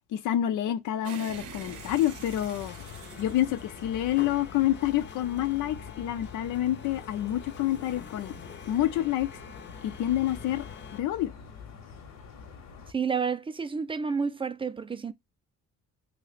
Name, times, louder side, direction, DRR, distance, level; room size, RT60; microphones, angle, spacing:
voice 1, 0.1-2.7 3.2-8.3 8.7-9.3 9.8-10.6 10.9-11.3, left 13 dB, 85° left, 0.6 m, -28 dB
sound 1, 1.0-4.5, right 9 dB, 80° right, 0.6 m, -46 dB
sound 2, 1.3-12.9, left 6 dB, 60° left, 0.9 m, -46 dB
sound 3, 1.6-11.0, left 6 dB, 40° left, 0.5 m, -47 dB
voice 2, 12.9-15.1, right 5 dB, 20° right, 0.3 m, -30 dB
2.8 x 2.1 x 4.0 m
cardioid pair, 90°, 30 cm